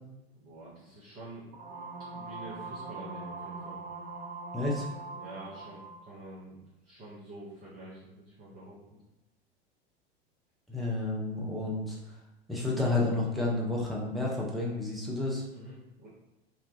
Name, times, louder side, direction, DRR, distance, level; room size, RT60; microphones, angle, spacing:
voice 1, 0.4-1.5 2.1-3.8 5.1-8.8 15.5-16.1, right 1 dB, 30° right, -8 dB, 0.7 m, -47 dB
sound 1, 1.5-6.0, right 3 dB, 75° right, 0.6 m, -42 dB
voice 2, 4.5-4.9 10.7-12.1 12.5-15.4, left 2 dB, ahead, -4 dB, 0.3 m, -30 dB
2.9 x 2.2 x 2.4 m, 0.99 s
figure-of-eight pair, 85°, 32 cm